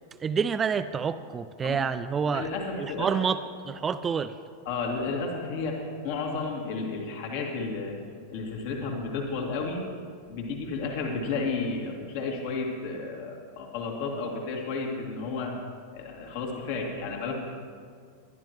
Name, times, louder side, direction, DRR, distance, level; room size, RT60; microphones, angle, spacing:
voice 1, 0.2-2.5 2.8-3.4 3.7-4.3, right 6 dB, 20° right, 12 dB, 0.4 m, -28 dB
voice 2, 2.2-3.2 4.6-8.0 8.3-9.8 10.3-15.6 15.9-17.3, left 4 dB, 50° left, 0 dB, 2.5 m, -32 dB
21.5 x 11.5 x 3.1 m, 2.1 s
figure-of-eight pair, 90°, 0 cm